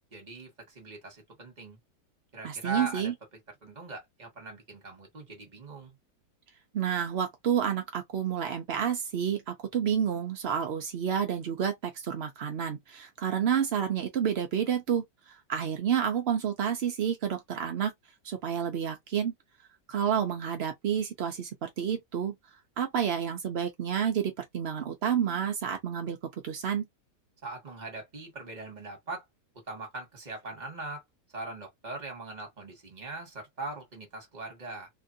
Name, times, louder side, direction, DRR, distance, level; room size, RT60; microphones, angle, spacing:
voice 1, 0.1-1.8 2.3-3.1 3.6-6.0 27.4-29.2 29.7-31.0 31.3-34.9, right 3 dB, 25° right, 1.3 m, -40 dB
voice 2, 2.4-3.1 6.7-17.9 18.2-19.3 19.9-22.3 22.8-26.2 26.4-26.8, right 8 dB, 75° right, 0.5 m, -29 dB
2.9 x 2.5 x 2.6 m
omnidirectional pair, 1.9 m